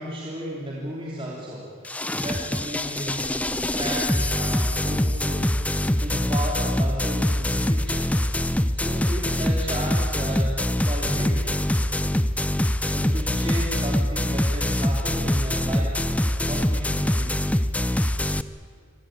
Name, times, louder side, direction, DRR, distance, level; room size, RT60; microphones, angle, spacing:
voice 1, 0.0-3.4 3.7-8.1 8.7-11.5 12.9-16.0 16.4-17.4, right 1 dB, 25° right, -4 dB, 3.1 m, -34 dB
sound 1, 1.8-18.4, left 1 dB, 5° left, 0.6 m, -24 dB
27.5 x 23.5 x 8.9 m, 2.2 s
head